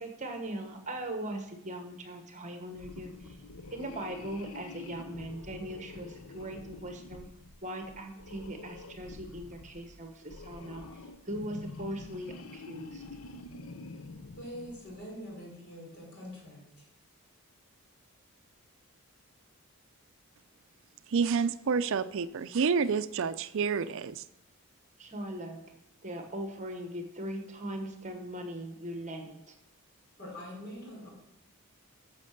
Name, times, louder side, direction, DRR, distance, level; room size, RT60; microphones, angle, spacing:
voice 1, 0.0-3.4 3.7-7.3 7.6-13.0 25.0-25.6 26.0-29.5, right 1 dB, 35° right, 5 dB, 1.2 m, -40 dB
sound 1, 2.7-15.2, left 3 dB, 70° left, 0.7 m, -47 dB
voice 2, 14.4-16.8 30.2-31.1, equal, 50° left, -2 dB, 4.7 m, -44 dB
voice 3, 21.1-24.2, right 5 dB, 60° right, 13 dB, 0.4 m, -29 dB
10.5 x 6.6 x 6.5 m, 0.81 s
head